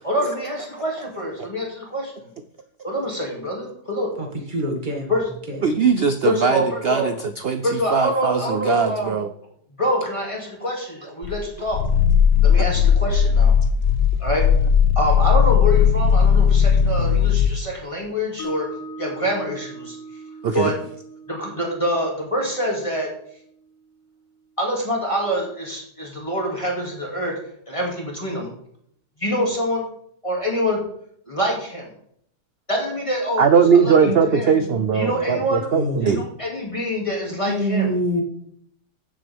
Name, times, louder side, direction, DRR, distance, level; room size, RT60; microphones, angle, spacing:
voice 1, 0.0-2.3 2.8-4.1 5.1-5.2 6.2-7.1 7.6-9.2 9.8-11.8 12.4-13.5 14.2-14.5 15.0-18.7 19.0-20.0 20.5-20.7 21.3-23.1 24.6-27.4 27.7-28.5 29.2-29.8 30.2-30.8 31.3-31.9 32.7-33.5 33.7-34.0 34.3-34.5 34.9-35.7 36.0-37.9, equal, 20° left, -2 dB, 2.5 m, -25 dB
voice 2, 4.2-5.2 5.5-5.6 34.0-35.2 35.7-36.1 37.3-38.2, right 1 dB, 30° right, 2 dB, 2.0 m, -27 dB
voice 3, 5.6-9.3 20.4-20.7 33.4-36.2, right 6 dB, 75° right, 8 dB, 0.5 m, -20 dB
Growling, 11.2-17.6, left 7 dB, 75° left, 0.6 m, -17 dB
Mallet percussion, 18.4-24.5, right 2 dB, 55° left, 2.4 m, -40 dB
14.5 x 7.6 x 3.5 m, 0.69 s
omnidirectional pair, 1.8 m